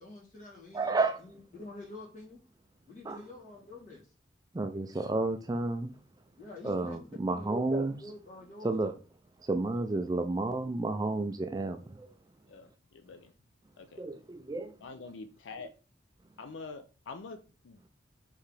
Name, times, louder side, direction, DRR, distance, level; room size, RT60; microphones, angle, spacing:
voice 1, 0.0-2.4 2.9-4.0 6.4-7.0 7.3-9.0, left 2 dB, 40° left, 2.1 m, -48 dB
voice 2, 0.7-1.2 3.0-3.2 4.5-5.9 6.6-7.9 8.6-8.9 9.4-12.1 14.0-14.7, right 2 dB, 20° right, 0.3 m, -31 dB
voice 3, 12.5-13.3 13.8-14.0 14.8-15.7 16.4-17.9, left 4 dB, 75° left, 0.4 m, -46 dB
4.6 x 3.5 x 3.3 m
head